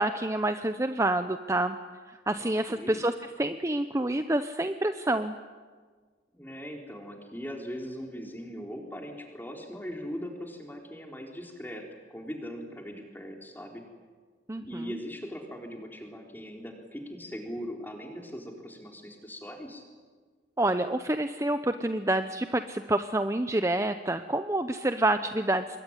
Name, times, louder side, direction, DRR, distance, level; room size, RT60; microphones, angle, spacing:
voice 1, 0.0-1.8 2.1-5.4 14.5-14.9 20.6-25.8, right 1 dB, 15° right, 9 dB, 0.7 m, -28 dB
voice 2, 2.4-3.0 6.3-13.8 14.6-19.8, equal, 10° left, 2 dB, 4.0 m, -40 dB
26.5 x 22.5 x 10.0 m, 1.5 s
head